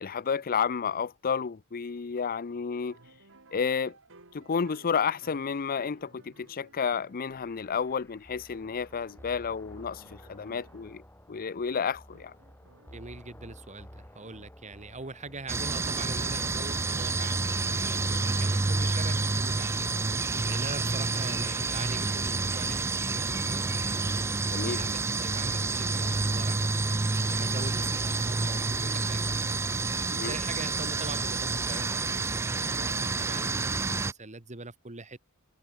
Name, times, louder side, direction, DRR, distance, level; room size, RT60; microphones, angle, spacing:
voice 1, 0.0-3.0 3.5-3.9 4.3-11.0 11.3-12.3 24.5-24.8 30.1-30.3, left 6 dB, 40° left, 0.5 m, -31 dB
sound 1, 2.9-7.9 8.3-11.0 11.7-13.2, right 2 dB, 60° right, 4.7 m, -58 dB
sound 2, 7.3-17.6, equal, 10° left, 5.9 m, -52 dB
voice 2, 12.9-26.8 27.3-29.3 30.1-35.2, right 3 dB, 35° right, 2.3 m, -43 dB
sound 3, 15.5-34.1, right 3 dB, 10° right, 0.3 m, -29 dB
head